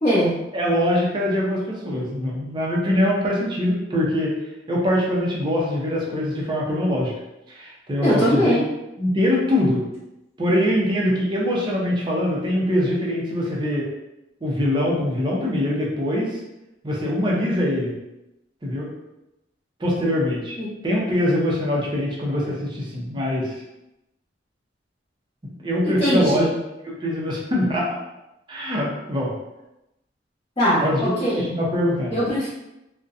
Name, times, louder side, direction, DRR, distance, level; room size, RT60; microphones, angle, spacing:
voice 1, 0.0-0.3 8.0-8.6 20.6-20.7 25.8-26.6 30.6-31.5 32.1-32.5, equal, 25° left, -15 dB, 1.0 m, -21 dB
voice 2, 0.5-4.3 4.7-7.1 7.5-8.6 9.0-9.8 10.4-13.8 14.4-16.4 16.8-17.9 18.6-18.9 19.8-20.6 20.8-23.5 25.6-26.4 26.8-28.0 28.5-29.3 30.8-31.2 31.5-32.1, left 1 dB, 25° right, -4 dB, 0.5 m, -23 dB
2.6 x 2.1 x 2.4 m, 0.92 s
head